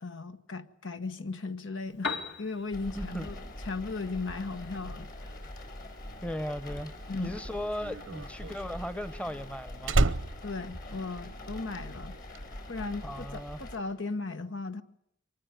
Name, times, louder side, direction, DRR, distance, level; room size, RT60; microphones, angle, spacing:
voice 1, 0.0-3.3 3.6-5.1 7.1-7.4 10.4-12.2 12.7-14.8, left 3 dB, 80° left, 1.4 m, -36 dB
Piano, 1.8-9.8, left 4 dB, 65° left, 2.4 m, -45 dB
sound 1, 2.7-13.8, left 1 dB, 50° left, 4.8 m, -43 dB
voice 2, 2.9-3.3 6.2-6.9 7.2-10.0 13.0-13.6, equal, 5° left, 0.9 m, -37 dB
Slam, 7.0-11.7 12.0-12.4, right 2 dB, 90° right, 0.8 m, -30 dB
24.0 x 19.5 x 9.1 m
head